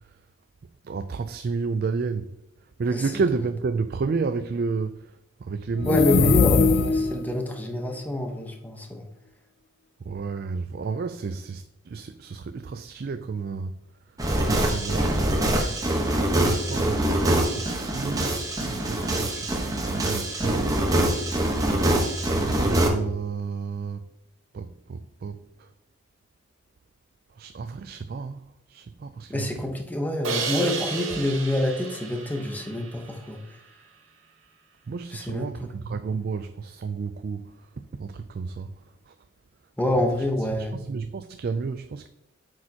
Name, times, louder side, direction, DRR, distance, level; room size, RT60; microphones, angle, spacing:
voice 1, 0.9-2.3 2.8-4.9 5.4-6.4 10.1-11.6 11.9-13.8 14.5-15.1 16.4-17.0 17.3-20.8 22.3-24.0 24.5-25.4 27.4-28.4 28.7-29.5 34.9-37.5 38.0-38.7 40.5-42.1, right 4 dB, 50° right, 0.3 m, -31 dB
voice 2, 2.9-3.2 5.9-9.1 29.3-33.4 35.1-35.7 39.8-40.8, left 1 dB, 10° left, 1.0 m, -27 dB
sound 1, 5.7-7.3, left 5 dB, 55° left, 0.4 m, -20 dB
sound 2, 14.2-22.9, right 1 dB, 20° right, 1.1 m, -24 dB
Crash cymbal, 30.2-33.3, right 4 dB, 75° right, 1.2 m, -32 dB
8.6 x 6.5 x 2.9 m
head